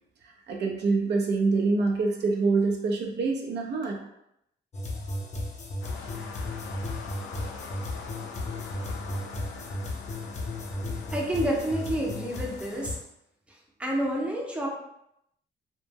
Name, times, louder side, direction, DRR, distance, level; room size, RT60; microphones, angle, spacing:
voice 1, 0.2-4.0, right 3 dB, 60° right, 1 dB, 0.5 m, -26 dB
sound 1, 4.7-13.0, left 1 dB, 35° left, 0.6 m, -35 dB
sound 2, 5.8-13.0, left 5 dB, 80° left, 0.4 m, -43 dB
voice 2, 11.1-13.0 13.5-14.7, right 1 dB, 5° right, -2 dB, 0.6 m, -29 dB
2.1 x 2.0 x 3.3 m, 0.79 s
cardioid pair, 90°, 20 cm